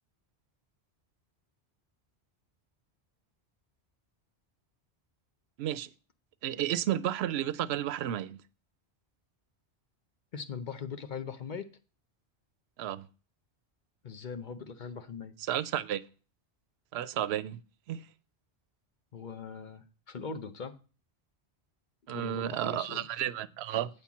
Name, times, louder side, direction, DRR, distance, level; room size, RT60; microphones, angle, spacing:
voice 1, 5.6-5.9 6.4-8.4 12.8-13.1 15.4-16.0 16.9-17.6 17.9-18.1 22.1-23.9, right 11 dB, 75° right, 0.8 m, -32 dB
voice 2, 10.3-11.7 14.0-15.3 19.1-20.7 22.1-23.0, left 6 dB, 50° left, 0.8 m, -40 dB
8.2 x 4.4 x 7.1 m
omnidirectional pair, 1.1 m